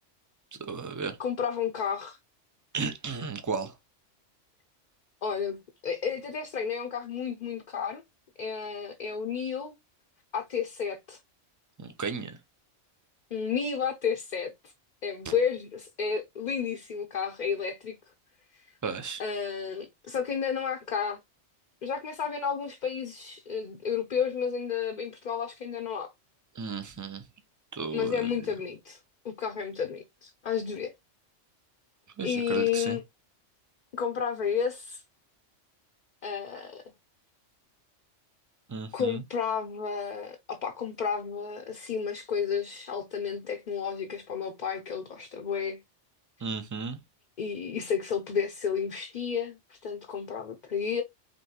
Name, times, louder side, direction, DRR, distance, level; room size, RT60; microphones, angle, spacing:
voice 1, 0.6-1.2 2.7-3.7 11.8-12.4 15.2-15.3 18.8-19.2 26.5-27.2 27.7-28.3 32.2-33.0 38.7-39.2 46.4-47.0, right 5 dB, 25° right, 0.4 m, -34 dB
voice 2, 1.2-2.2 5.2-5.6 5.8-8.0 8.4-9.7 10.3-11.2 13.3-14.5 15.0-18.0 19.2-21.2 21.8-26.1 27.9-29.0 29.2-30.9 32.2-33.0 33.9-35.0 36.2-36.8 38.9-45.8 47.4-51.0, left 7 dB, 45° left, 0.7 m, -31 dB
5.2 x 3.5 x 2.8 m
omnidirectional pair, 1.2 m